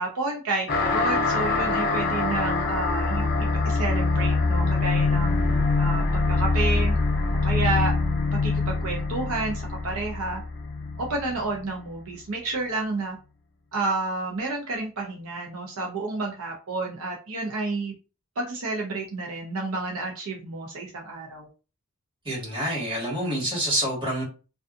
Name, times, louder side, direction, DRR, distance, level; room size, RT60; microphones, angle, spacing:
voice 1, 0.0-3.3 3.6-7.0 7.4-7.9 8.3-10.4 11.0-13.2 13.7-17.9 18.4-21.5, right 3 dB, 70° right, -1 dB, 0.6 m, -30 dB
sound 1, 0.7-11.7, left 3 dB, 45° left, 0.6 m, -24 dB
voice 2, 22.2-24.2, equal, 20° right, -6 dB, 1.5 m, -27 dB
2.5 x 2.4 x 2.4 m, 0.33 s
head